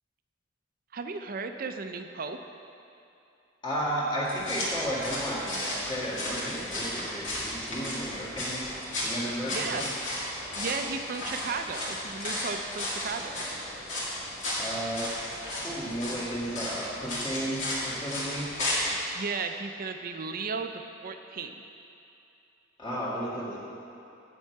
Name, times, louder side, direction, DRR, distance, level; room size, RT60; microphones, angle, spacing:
voice 1, 0.9-2.4 9.5-9.8 10.5-13.4 19.1-20.7 21.0-21.6, right 4 dB, 45° right, 7 dB, 0.5 m, -35 dB
voice 2, 3.6-8.6 9.0-9.9 14.6-15.1 15.4-18.5 22.8-23.6, equal, 25° left, -7 dB, 1.9 m, -33 dB
sound 1, 4.3-18.9, left 1 dB, 75° left, 2.1 m, -34 dB
8.3 x 8.3 x 4.6 m, 2.7 s
head